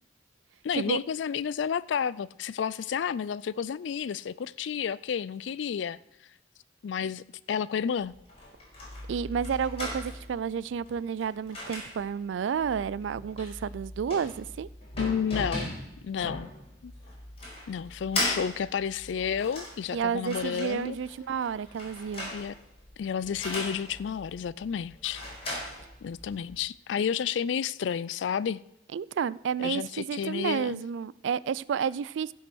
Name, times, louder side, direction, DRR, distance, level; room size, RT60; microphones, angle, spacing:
voice 1, 0.6-6.0 6.8-8.1 15.0-15.8 16.0-16.5 16.8-16.9 17.7-21.0 22.3-22.6 23.0-25.2 26.0-28.6 29.6-30.8, left 7 dB, 75° left, 0.4 m, -31 dB
sound 1, 8.0-26.6, left 1 dB, 35° left, 4.8 m, -39 dB
voice 2, 9.1-14.7 19.9-22.3 28.9-32.3, right 7 dB, 80° right, 0.3 m, -31 dB
15.0 x 5.5 x 6.2 m
head